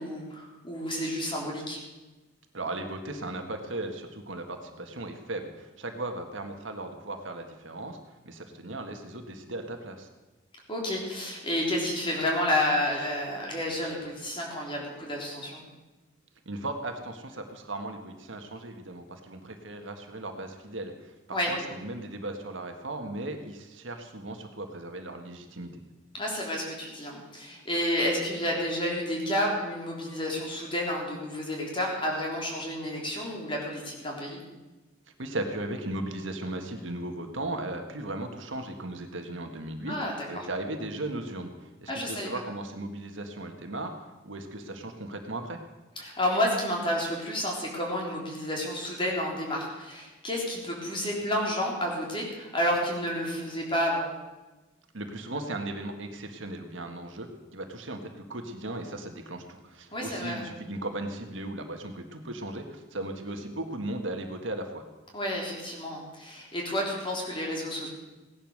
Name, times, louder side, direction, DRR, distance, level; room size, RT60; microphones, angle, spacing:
voice 1, 0.0-1.8 10.7-15.6 21.3-21.5 26.1-34.4 39.9-40.5 41.9-42.3 46.0-54.1 59.9-60.5 65.1-67.9, left 1 dB, 25° left, -1 dB, 3.6 m, -30 dB
voice 2, 2.5-8.0 8.3-10.1 16.5-25.8 35.2-40.0 40.3-45.6 54.9-64.8, right 2 dB, 70° right, 5 dB, 1.7 m, -37 dB
17.0 x 11.0 x 6.6 m, 1.1 s
head